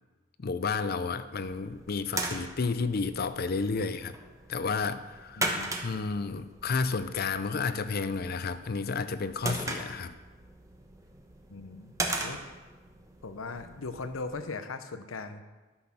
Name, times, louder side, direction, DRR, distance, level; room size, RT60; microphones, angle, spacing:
voice 1, 0.4-4.2 4.5-5.5 5.8-10.1, left 4 dB, 50° left, 12 dB, 0.5 m, -31 dB
sound 1, 1.3-14.4, right 2 dB, 15° right, 1.0 m, -39 dB
voice 2, 5.4-5.8 11.5-12.4 13.2-15.4, left 3 dB, 90° left, 10 dB, 0.8 m, -39 dB
11.5 x 6.4 x 6.0 m, 1.3 s
head